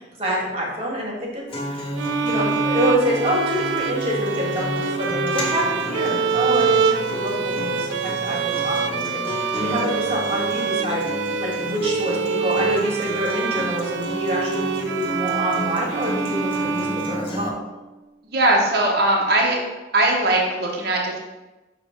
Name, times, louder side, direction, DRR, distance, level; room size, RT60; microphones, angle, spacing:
voice 1, 0.0-1.4 1.7-1.9 2.2-17.6, equal, 35° right, -2 dB, 1.6 m, -27 dB
Acoustic guitar, 1.5-17.5, left 1 dB, 30° left, 1.1 m, -31 dB
sound 1, 2.0-17.6, right 6 dB, 80° right, 0.4 m, -25 dB
voice 2, 18.3-19.6 19.9-21.2, right 2 dB, 55° right, -1 dB, 1.0 m, -19 dB
6.4 x 3.3 x 5.0 m, 1.1 s
head